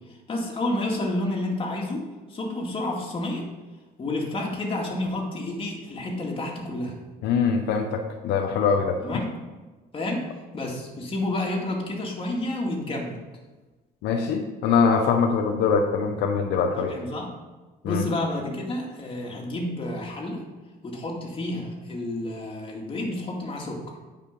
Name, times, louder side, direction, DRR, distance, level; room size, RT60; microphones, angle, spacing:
voice 1, 0.3-3.5 4.0-7.0 9.0-9.3 9.9-10.3 10.5-13.1 16.7-17.3 17.8-20.4 20.8-23.8, left 1 dB, 30° left, -1 dB, 2.3 m, -30 dB
voice 2, 7.2-9.2 14.0-16.9 17.8-18.0, left 5 dB, 85° left, 4 dB, 0.8 m, -23 dB
9.3 x 5.1 x 5.3 m, 1.2 s
cardioid pair, 110°, 17 cm